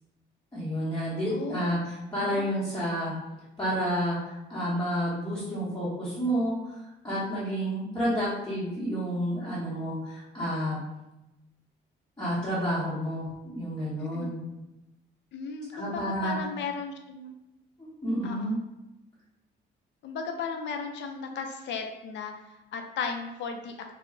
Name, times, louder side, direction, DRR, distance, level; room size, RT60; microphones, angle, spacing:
voice 1, 0.5-3.1 3.6-10.8 12.2-14.4 15.7-16.4 18.0-18.6, equal, 15° left, -11 dB, 1.0 m, -30 dB
voice 2, 1.3-1.6 2.2-2.4 14.0-14.3 15.3-17.3 18.2-18.6 20.0-22.3 22.7-23.7, left 5 dB, 65° left, 4 dB, 0.5 m, -35 dB
2.2 x 2.1 x 3.5 m, 0.97 s
cardioid pair, 90°, 20 cm